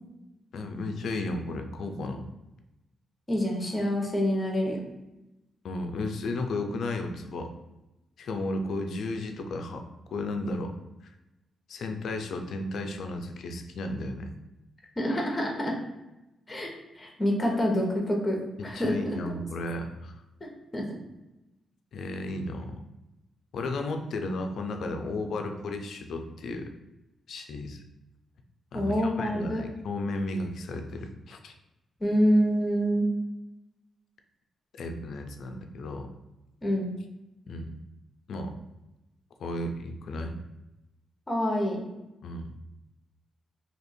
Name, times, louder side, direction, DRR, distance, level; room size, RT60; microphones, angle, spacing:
voice 1, 0.5-2.3 5.6-7.5 8.2-9.9 10.1-10.7 11.0-11.1 11.7-14.3 18.6-20.2 21.9-22.8 23.5-26.7 27.3-27.8 28.7-31.5 34.8-36.1 37.5-37.7 38.3-38.5 39.4-40.4 42.2-42.5, left 2 dB, 70° left, 5 dB, 0.5 m, -34 dB
voice 2, 3.3-4.8 15.0-15.7 16.5-16.7 16.9-18.4 18.6-19.3 20.7-20.8 28.7-29.6 32.0-33.1 36.6-36.9 41.3-41.9, equal, 25° left, 0 dB, 1.1 m, -26 dB
2.9 x 2.6 x 4.2 m, 0.99 s
cardioid pair, 80°, 0 cm